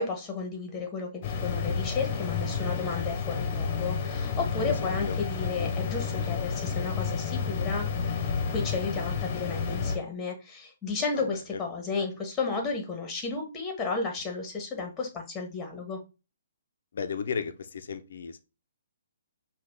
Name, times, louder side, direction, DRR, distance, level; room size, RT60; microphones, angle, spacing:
voice 1, 0.0-7.9 8.5-16.0, left 4 dB, 15° left, 3 dB, 1.4 m, -33 dB
sound 1, 1.2-10.0, left 5 dB, 35° left, 1.0 m, -30 dB
voice 2, 4.6-5.2 11.1-11.2 11.5-11.6 16.9-18.4, left 6 dB, 60° left, 9 dB, 0.6 m, -34 dB
5.5 x 2.4 x 3.6 m, 0.30 s
figure-of-eight pair, 130°, 0 cm